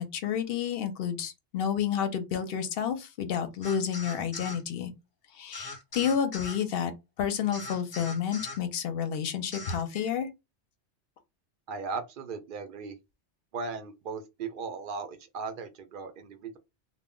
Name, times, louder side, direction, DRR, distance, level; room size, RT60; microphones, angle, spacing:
voice 1, 0.0-4.9 5.3-6.9 7.2-10.3, left 8 dB, 60° left, 0.7 m, -30 dB
sound 1, 3.6-4.6 5.5-6.6 7.5-8.6 9.5-9.8, left 2 dB, 30° left, 0.5 m, -41 dB
voice 2, 11.7-13.0 13.5-16.6, right 4 dB, 60° right, 0.6 m, -37 dB
2.1 x 2.1 x 3.6 m
omnidirectional pair, 1.2 m